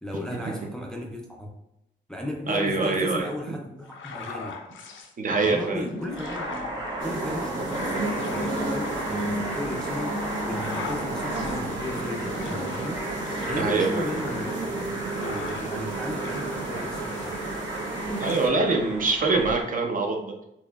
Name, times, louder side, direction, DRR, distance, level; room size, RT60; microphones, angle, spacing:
voice 1, 0.0-1.5 2.1-4.6 5.4-6.6 7.0-10.2 10.5-17.4, left 1 dB, 5° left, 0 dB, 0.4 m, -35 dB
voice 2, 2.5-3.6 5.2-5.9 9.3-9.4 13.6-14.1 18.2-20.4, right 3 dB, 45° right, 2 dB, 0.5 m, -24 dB
sound 1, 3.9-5.1 5.6-15.9 16.2-17.9 18.2-18.5, left 4 dB, 85° left, 0.5 m, -41 dB
sound 2, 6.0-19.6, right 1 dB, 25° right, 0.9 m, -34 dB
sound 3, 7.0-18.5, right 2 dB, 80° right, 0.9 m, -33 dB
4.2 x 2.8 x 2.3 m, 0.84 s
wide cardioid pair, 140°, 20 cm